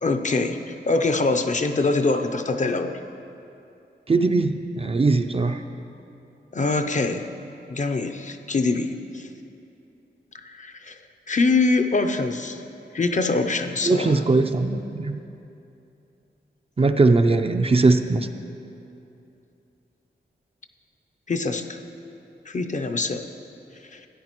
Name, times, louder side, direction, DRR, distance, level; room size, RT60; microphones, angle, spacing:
voice 1, 0.0-3.0 6.5-7.3 7.7-9.3 10.4-11.0 11.3-12.6 12.9-14.2 21.3-21.8 22.5-23.2 23.8-24.1, left 3 dB, 40° left, 7 dB, 0.5 m, -24 dB
voice 2, 4.1-5.6 13.9-15.2 16.8-18.3, right 3 dB, 30° right, 6 dB, 0.4 m, -20 dB
13.5 x 9.4 x 3.0 m, 2.7 s
wide cardioid pair, 65°, 19 cm